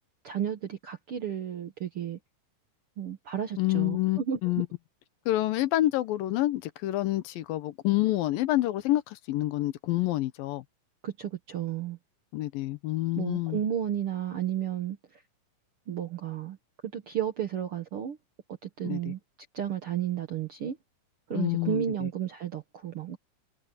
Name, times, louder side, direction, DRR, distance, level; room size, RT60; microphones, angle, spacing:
voice 1, 0.2-2.2 3.0-4.4 11.0-12.0 13.2-15.0 15.9-16.6 16.8-18.2 18.6-19.2 19.5-20.8 21.3-23.2, right 9 dB, 65° right, 1.4 m, -32 dB
voice 2, 3.6-4.7 5.3-10.6 12.3-13.6 18.8-19.1 21.3-22.1, left 16 dB, 80° left, 2.7 m, -28 dB
omnidirectional pair, 4.1 m